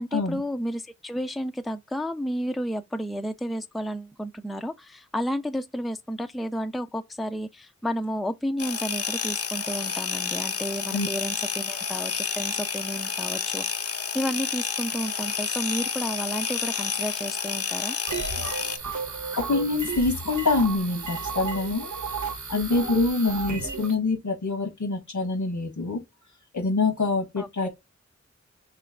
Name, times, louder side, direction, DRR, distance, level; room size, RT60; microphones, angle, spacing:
voice 1, 0.0-18.0 27.4-27.7, equal, ahead, 0.4 m, -32 dB
sound 1, 8.6-18.8, left 6 dB, 55° left, 0.5 m, -30 dB
sound 2, 18.1-24.0, right 5 dB, 85° right, 0.8 m, -33 dB
voice 2, 19.3-21.9 22.5-26.0 26.5-27.7, left 3 dB, 90° left, 1.5 m, -25 dB
3.3 x 3.0 x 3.6 m
wide cardioid pair, 50°, 29 cm